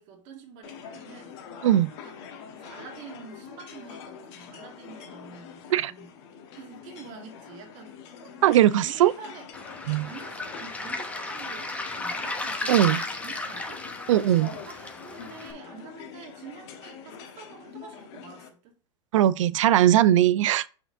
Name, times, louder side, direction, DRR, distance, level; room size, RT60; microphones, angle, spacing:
voice 1, 0.0-1.4 2.0-2.1 2.5-6.2 6.6-8.0 8.5-9.5 10.0-13.9 14.7-18.7, right 5 dB, 50° right, 1.7 m, -46 dB
sound 1, 0.6-18.5, left 7 dB, 60° left, 1.2 m, -45 dB
voice 2, 8.4-9.1 9.9-10.1 12.7-13.0 14.1-14.5 19.1-20.7, right 12 dB, 80° right, 0.4 m, -20 dB
Waves surf, 9.5-15.5, left 2 dB, 10° left, 0.9 m, -34 dB
5.7 x 4.4 x 3.7 m
hypercardioid pair, 115°, 16 cm